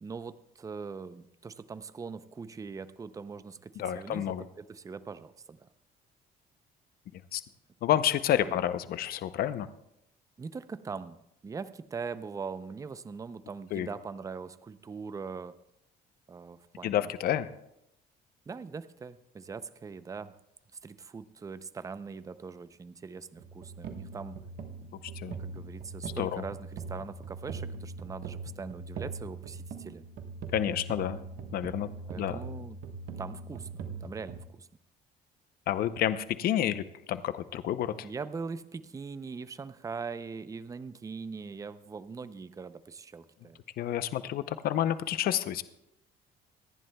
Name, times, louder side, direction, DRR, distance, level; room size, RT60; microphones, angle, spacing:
voice 1, 0.0-5.7 8.4-8.6 10.4-15.6 16.3-17.1 18.5-20.3 20.8-24.4 25.2-30.0 32.1-32.8 33.2-34.7 38.0-43.6, right 5 dB, 20° right, 13 dB, 0.5 m, -41 dB
voice 2, 3.8-4.4 7.1-7.4 7.8-9.7 13.7-13.9 16.8-17.5 25.2-25.3 26.2-26.4 30.5-31.2 31.5-31.9 32.2-32.4 35.7-38.1 43.8-45.6, left 11 dB, 60° left, 13 dB, 0.6 m, -29 dB
sound 1, 23.4-34.4, right 4 dB, 65° right, 1.3 m, -41 dB
25.0 x 10.5 x 2.3 m, 0.81 s
cardioid pair, 110°, 17 cm